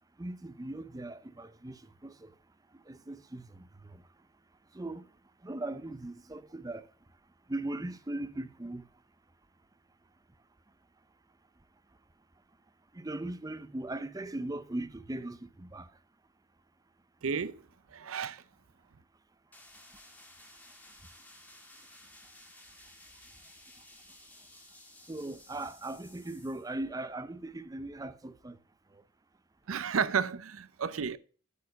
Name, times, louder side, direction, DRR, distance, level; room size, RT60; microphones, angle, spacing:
voice 1, 0.2-2.3 2.7-4.0 4.7-5.1 5.4-6.9 7.5-8.9 12.9-16.0 25.1-28.6 28.9-29.0, right 2 dB, 15° right, 0.5 m, -39 dB
voice 2, 17.2-17.6 17.9-18.4 29.7-31.2, right 6 dB, 85° right, 0.6 m, -32 dB
sound 1, 19.5-26.7, left 1 dB, 10° left, 1.4 m, -55 dB
8.5 x 4.6 x 6.4 m
head